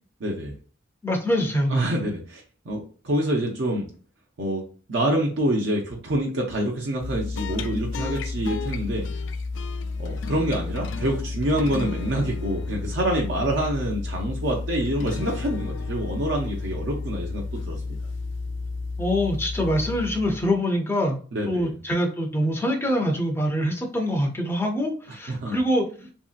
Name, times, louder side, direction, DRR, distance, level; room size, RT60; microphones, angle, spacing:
voice 1, 0.2-0.5 1.7-2.4 2.7-3.9 4.4-4.6 4.9-9.0 10.0-17.8 21.3-21.7 25.3-25.6, right 1 dB, 70° right, -1 dB, 0.6 m, -26 dB
voice 2, 1.0-1.9 19.0-21.2 21.5-26.1, equal, 15° left, 2 dB, 0.5 m, -24 dB
sound 1, 7.0-20.6, left 3 dB, 70° left, 0.4 m, -31 dB
3.0 x 2.7 x 2.4 m, 0.40 s
head